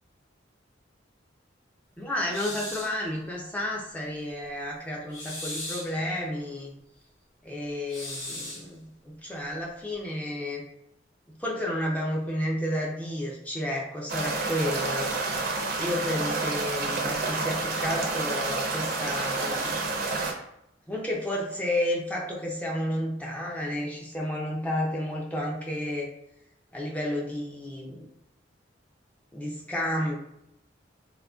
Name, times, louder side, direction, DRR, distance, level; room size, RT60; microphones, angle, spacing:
voice 1, 2.0-6.7 7.4-10.6 11.3-15.1 15.8-19.8 20.9-26.1 26.7-28.1 29.3-30.2, left 1 dB, 10° left, -3 dB, 0.4 m, -31 dB
sound 1, 2.3-3.0 5.1-6.0 7.9-8.7, left 1 dB, 85° left, 1.1 m, -37 dB
sound 2, 14.1-20.3, right 3 dB, 50° right, 0.5 m, -29 dB
3.6 x 2.1 x 2.3 m, 0.78 s
head